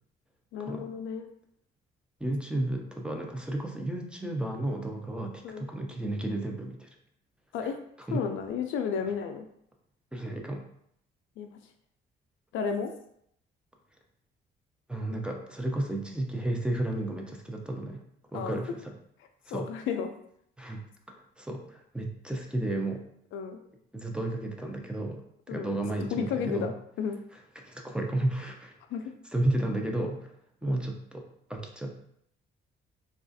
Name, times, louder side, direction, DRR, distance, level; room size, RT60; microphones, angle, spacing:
voice 1, 0.5-1.3 5.4-5.7 7.5-7.8 8.1-9.5 11.4-11.5 12.5-12.9 18.3-18.6 19.5-20.1 23.3-23.6 25.5-25.7 26.1-26.7 27.0-27.2 28.9-29.1 30.7-30.8, left 6 dB, 80° left, 6 dB, 0.4 m, -32 dB
voice 2, 2.2-6.9 8.1-8.2 10.1-10.6 14.9-18.0 18.3-18.9 19.5-19.7 20.6-23.0 23.9-25.2 25.5-26.7 27.3-28.7 29.3-30.3 30.6-32.0, right 1 dB, 5° right, 2 dB, 0.4 m, -33 dB
3.2 x 2.4 x 2.5 m, 0.70 s
cardioid pair, 90°, 20 cm